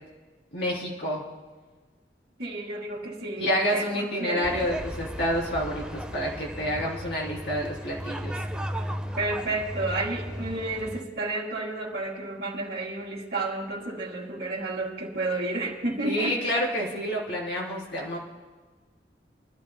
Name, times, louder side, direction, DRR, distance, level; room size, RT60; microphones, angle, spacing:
voice 1, 0.5-1.2 3.4-8.3 16.0-18.2, equal, 70° left, -3 dB, 3.3 m, -28 dB
voice 2, 2.4-4.6 9.2-16.4, right 2 dB, 70° right, -9 dB, 2.2 m, -31 dB
sound 1, 4.4-11.0, equal, 5° right, 0.6 m, -35 dB
27.5 x 12.5 x 2.2 m, 1.3 s
head